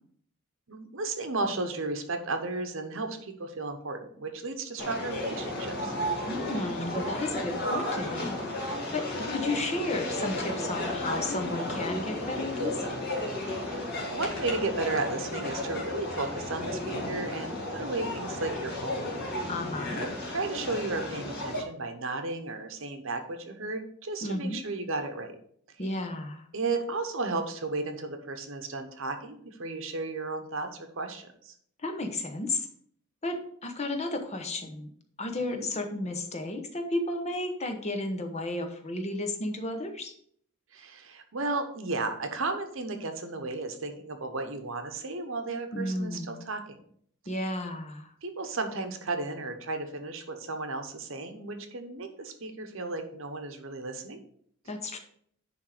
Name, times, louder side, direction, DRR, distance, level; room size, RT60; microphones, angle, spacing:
voice 1, 0.7-5.9 13.6-19.5 20.0-25.3 26.5-31.5 35.5-35.7 40.7-46.8 48.2-54.2, right 3 dB, 65° right, 7 dB, 1.0 m, -34 dB
sound 1, 4.8-21.6, left 1 dB, 45° left, 2.1 m, -33 dB
voice 2, 6.3-8.4 8.7-13.0 19.5-20.0 24.2-24.6 25.8-26.5 31.8-32.7 33.2-34.9 35.2-40.1 45.7-46.4 47.3-48.1 54.7-55.0, left 2 dB, 30° left, 5 dB, 0.9 m, -33 dB
10.0 x 3.5 x 5.0 m, 0.64 s
head